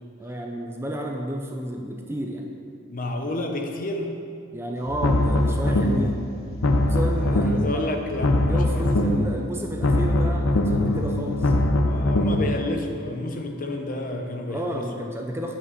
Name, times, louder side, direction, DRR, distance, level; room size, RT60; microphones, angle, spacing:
voice 1, 0.2-2.5 4.5-6.2 6.9-8.0 8.4-11.5 14.5-15.5, right 1 dB, 10° right, 1 dB, 0.5 m, -31 dB
voice 2, 2.9-4.2 7.1-8.9 11.9-14.9, left 1 dB, 40° left, 3 dB, 0.8 m, -30 dB
sound 1, 4.9-6.2 6.5-7.8 8.1-9.4 9.7-12.5, left 1 dB, 85° left, 0.6 m, -22 dB
8.3 x 5.8 x 6.1 m, 2.4 s
head